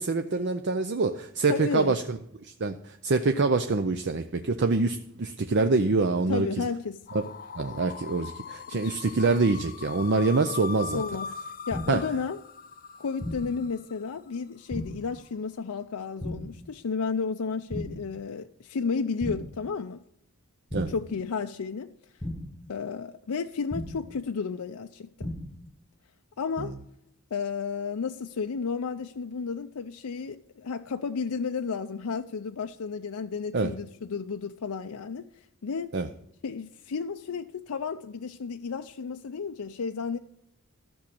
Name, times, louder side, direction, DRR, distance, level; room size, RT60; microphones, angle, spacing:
voice 1, 0.0-2.2 2.4-6.6 7.1-7.2 7.6-11.0 11.9-12.0 20.7-20.9 26.6-26.7 33.5-33.7 35.9-36.1, right 3 dB, 50° right, 0.6 m, -25 dB
voice 2, 1.5-2.0 6.3-7.0 8.7-9.0 10.4-10.5 10.9-12.4 13.0-20.0 20.9-22.1 22.7-25.3 26.4-26.8 27.3-35.9 36.4-40.2, left 5 dB, 85° left, 0.5 m, -32 dB
sound 1, 7.1-14.0, left 6 dB, 40° left, 0.6 m, -41 dB
sound 2, 11.7-12.2 13.2-13.7 14.7-15.2 16.2-16.7 17.7-18.2 19.2-19.7 20.7-21.2 22.2-22.7 23.7-24.2 25.2-25.7, left 1 dB, 10° left, 1.0 m, -36 dB
13.5 x 6.2 x 8.6 m
head